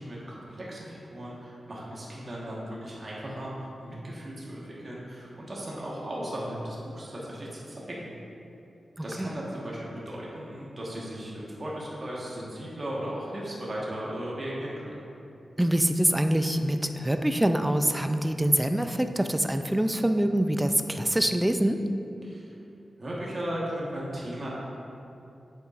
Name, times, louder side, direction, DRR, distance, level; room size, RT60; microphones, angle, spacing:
voice 1, 0.0-3.5 3.8-8.1 9.0-14.9 22.2-22.5 23.0-24.5, equal, 35° right, -6 dB, 1.4 m, -36 dB
voice 2, 15.6-21.8, right 1 dB, 10° right, 7 dB, 0.3 m, -25 dB
9.1 x 6.8 x 2.5 m, 2.8 s
wide cardioid pair, 120°, 0 cm